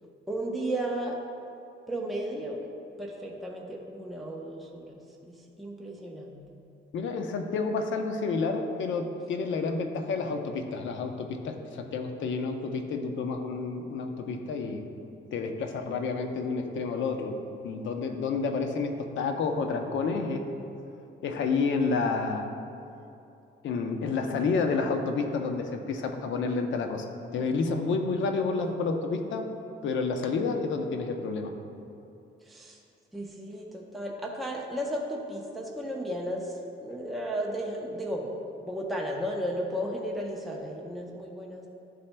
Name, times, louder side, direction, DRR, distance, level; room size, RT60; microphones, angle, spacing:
voice 1, 0.3-1.2 1.9-2.7 3.0-6.5 32.4-32.8 33.1-38.3 38.7-41.7, right 1 dB, ahead, -2 dB, 0.7 m, -34 dB
voice 2, 6.9-14.8 15.3-20.5 21.2-22.5 23.6-27.1 27.3-29.5 29.8-31.5, left 4 dB, 70° left, 5 dB, 0.7 m, -30 dB
11.0 x 4.2 x 2.2 m, 2.7 s
cardioid pair, 90°, 20 cm